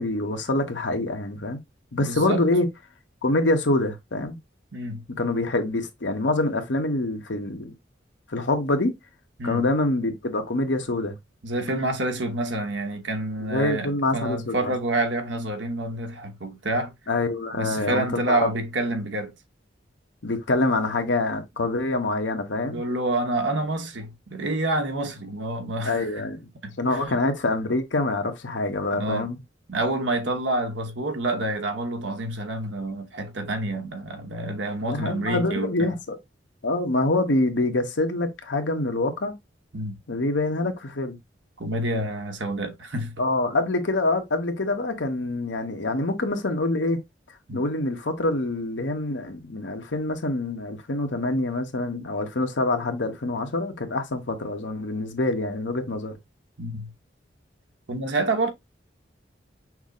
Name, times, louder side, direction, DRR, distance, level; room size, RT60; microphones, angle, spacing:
voice 1, 0.0-1.6 1.9-2.7 3.2-4.4 5.1-7.7 8.3-8.9 9.4-11.1 13.5-14.7 17.1-18.5 20.2-22.8 25.8-26.5 26.8-29.4 34.8-36.2 36.6-39.3 40.1-41.2 43.2-47.0 47.5-56.2, left 2 dB, 90° left, 1.1 m, -25 dB
voice 2, 2.1-2.5 4.7-5.0 9.4-9.7 11.4-16.9 17.5-19.3 22.6-26.2 26.6-27.2 28.9-29.3 29.7-35.9 39.7-40.0 41.6-43.2 47.5-47.6 56.6-56.9 57.9-58.5, right 2 dB, 90° right, 1.0 m, -28 dB
6.0 x 2.0 x 3.6 m
head